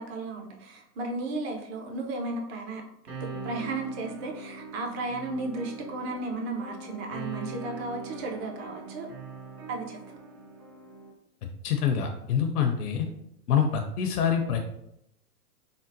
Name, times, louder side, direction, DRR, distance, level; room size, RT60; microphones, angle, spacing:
voice 1, 0.0-2.8 3.2-9.1 9.7-10.0, right 2 dB, 45° right, 2 dB, 0.7 m, -34 dB
sound 1, 3.1-11.1, right 3 dB, 70° right, 1.0 m, -41 dB
voice 2, 11.6-13.0 13.5-14.6, left 7 dB, 75° left, 4 dB, 0.5 m, -25 dB
3.7 x 2.0 x 2.6 m, 0.79 s
hypercardioid pair, 110°, 47 cm